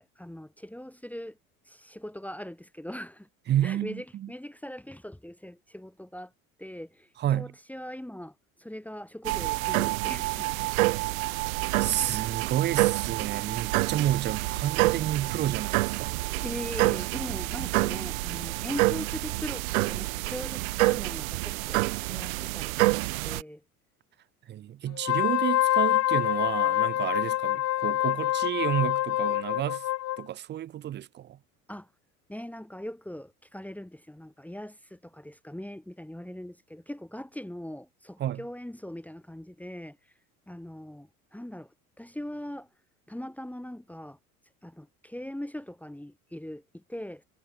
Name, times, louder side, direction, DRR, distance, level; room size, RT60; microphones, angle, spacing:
voice 1, 0.0-1.4 1.7-3.3 3.6-6.3 6.6-8.3 8.6-10.8 16.4-23.6 31.7-31.9 32.3-40.0 40.5-41.7 42.0-42.7 43.1-44.2 44.6-47.2, left 1 dB, 5° left, 2.1 m, -40 dB
voice 2, 3.5-4.3 7.2-7.5 11.8-16.1 24.5-29.9 30.2-31.4 38.2-38.4, right 12 dB, 25° right, 0.5 m, -30 dB
sound 1, 9.2-23.4, right 22 dB, 65° right, 0.9 m, -28 dB
Wind instrument woodwind instrument, 25.0-30.2, left 15 dB, 35° left, 0.9 m, -26 dB
figure-of-eight pair, 70°, 44 cm